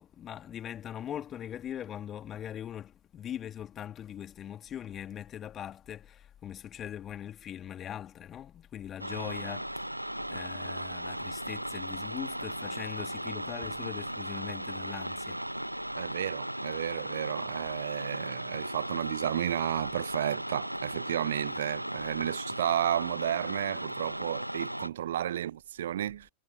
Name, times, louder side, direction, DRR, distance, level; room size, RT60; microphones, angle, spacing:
voice 1, 0.0-15.4, left 10 dB, 25° left, 2.4 m, -41 dB
sound 1, 9.0-24.9, right 1 dB, 90° right, 1.3 m, -37 dB
voice 2, 16.0-26.3, right 11 dB, 60° right, 0.4 m, -32 dB
figure-of-eight pair, 90°, 0 cm